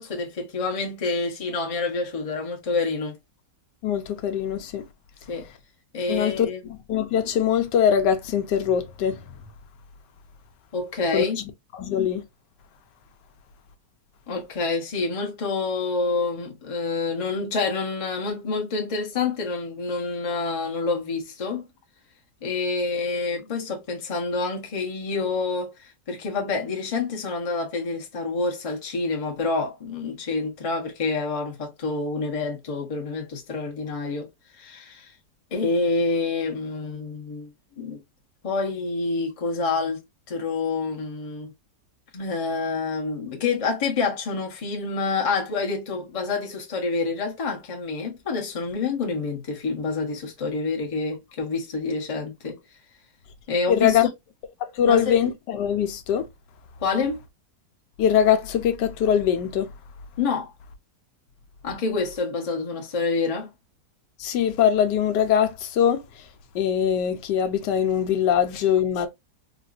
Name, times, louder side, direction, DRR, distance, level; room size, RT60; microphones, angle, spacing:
voice 1, 0.0-3.2 5.3-5.5 5.9-6.6 10.7-11.4 14.3-21.7 22.4-34.3 34.6-35.1 35.5-38.0 38.4-40.0 40.3-41.5 42.1-52.6 53.5-54.0 54.8-55.2 56.8-57.2 60.2-60.5 61.6-63.5, left 4 dB, 30° left, 0.6 m, -27 dB
voice 2, 3.8-4.9 6.1-9.3 11.1-11.4 11.7-12.2 53.7-54.1 54.6-56.3 58.0-59.7 64.2-66.3 66.5-69.1, left 9 dB, 85° left, 1.2 m, -22 dB
3.9 x 2.3 x 2.4 m
omnidirectional pair, 1.8 m